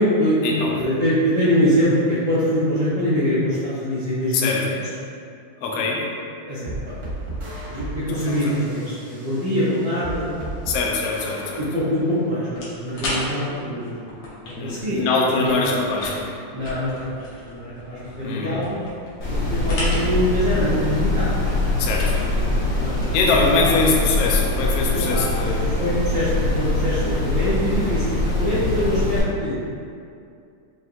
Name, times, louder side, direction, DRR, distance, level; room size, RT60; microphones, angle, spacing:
voice 1, 0.0-4.8 6.5-6.9 7.7-10.3 11.6-15.6 16.5-17.0 17.5-18.8 19.3-21.3 22.8-23.9 24.9-25.3 25.8-29.6, equal, 80° right, -14 dB, 1.0 m, -24 dB
voice 2, 4.3-4.8 5.6-6.0 8.2-8.5 10.7-11.6 14.6-16.2 18.2-18.6 21.8-22.2 23.1-25.6, left 3 dB, 80° left, -2 dB, 1.4 m, -23 dB
sound 1, 6.7-12.3, right 2 dB, 55° right, 1.1 m, -35 dB
sound 2, 12.5-23.7, left 1 dB, 60° left, 1.5 m, -36 dB
sound 3, 19.2-29.2, left 2 dB, 45° left, 1.3 m, -23 dB
5.8 x 2.8 x 2.5 m, 2.4 s
omnidirectional pair, 3.4 m